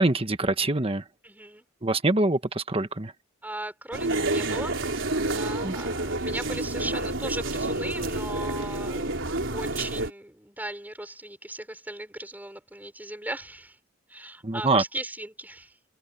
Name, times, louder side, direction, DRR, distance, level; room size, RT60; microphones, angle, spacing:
voice 1, 0.0-1.0 1.8-3.1 5.6-5.7 14.4-14.8, right 2 dB, 30° right, 1.4 m, -24 dB
voice 2, 1.2-1.6 3.4-4.8 5.3-9.2 9.5-13.8 14.1-15.7, right 1 dB, 10° right, 5.8 m, -37 dB
sound 1, 3.9-10.1, right 2 dB, 80° right, 3.8 m, -29 dB
open air
head